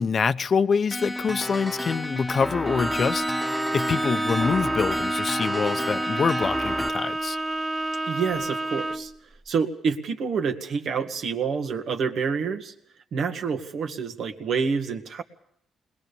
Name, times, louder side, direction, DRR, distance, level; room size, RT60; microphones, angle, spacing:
voice 1, 0.0-7.4, left 5 dB, 45° left, 0.8 m, -25 dB
sound 1, 0.9-6.9, left 1 dB, 5° left, 1.4 m, -31 dB
Bowed string instrument, 2.6-9.1, right 1 dB, 20° right, 1.1 m, -29 dB
voice 2, 8.1-9.1 9.5-12.7 13.1-15.2, right 5 dB, 65° right, 2.0 m, -27 dB
21.0 x 20.5 x 7.0 m
cardioid pair, 90°, 0 cm